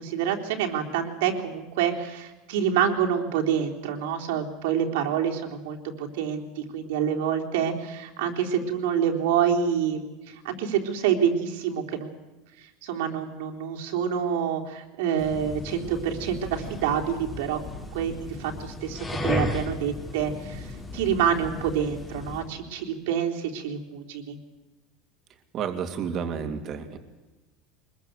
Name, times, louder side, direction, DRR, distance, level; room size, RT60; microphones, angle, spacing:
voice 1, 0.0-12.1 12.8-17.6 17.9-18.1 18.4-24.4, right 8 dB, 80° right, 1 dB, 3.8 m, -27 dB
sound 1, 15.2-22.5, left 2 dB, 10° left, 2.8 m, -35 dB
voice 2, 25.5-27.0, right 7 dB, 30° right, 7 dB, 2.7 m, -31 dB
24.0 x 21.5 x 8.1 m, 1.1 s
cardioid pair, 170°, 0 cm